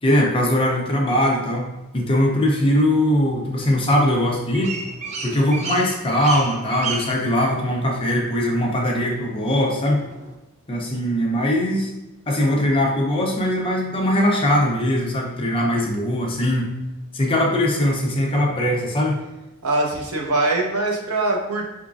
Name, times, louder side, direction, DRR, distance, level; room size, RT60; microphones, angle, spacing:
voice 1, 0.0-4.8 5.2-10.0 10.7-11.9 12.3-16.7 17.1-19.2, left 1 dB, 25° left, -1 dB, 0.6 m, -21 dB
sound 1, 4.1-10.3, right 4 dB, 30° right, 0.4 m, -35 dB
voice 2, 19.6-21.6, right 2 dB, 90° right, 0 dB, 0.9 m, -22 dB
4.8 x 3.6 x 2.5 m, 1.0 s
head